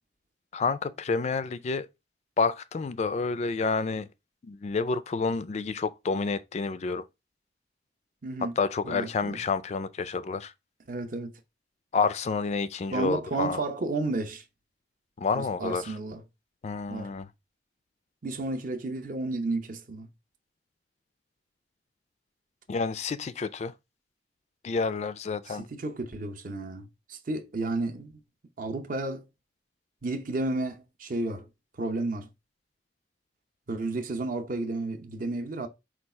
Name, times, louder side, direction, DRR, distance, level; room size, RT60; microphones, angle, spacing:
voice 1, 0.5-1.9 2.4-4.1 4.4-7.0 8.6-10.5 11.9-13.6 15.2-16.0 16.6-17.3 22.7-23.7 24.6-25.7, left 4 dB, 40° left, 0.3 m, -29 dB
voice 2, 8.2-8.5 8.8-9.4 10.9-11.3 12.9-14.4 15.3-16.2 16.9-17.1 18.2-20.1 25.5-28.1 28.6-29.2 30.0-31.5 31.8-32.3 33.7-35.7, right 2 dB, 50° right, 0.6 m, -32 dB
4.5 x 2.3 x 4.2 m
head